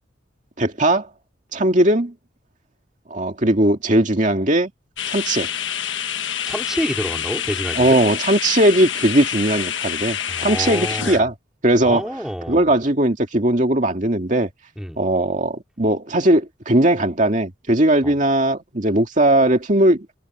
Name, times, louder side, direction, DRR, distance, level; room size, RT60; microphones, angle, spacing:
voice 1, 0.6-1.1 1.5-2.1 3.1-4.7 5.1-5.5 7.7-11.3 11.6-12.1 12.5-14.5 15.0-20.1, right 1 dB, 40° right, 2.2 m, -18 dB
sound 1, 5.0-11.2, left 9 dB, 75° left, 1.3 m, -27 dB
voice 2, 6.5-8.0 10.3-11.3 11.8-12.7 14.8-15.0 18.0-18.1, equal, 5° right, 3.1 m, -28 dB
head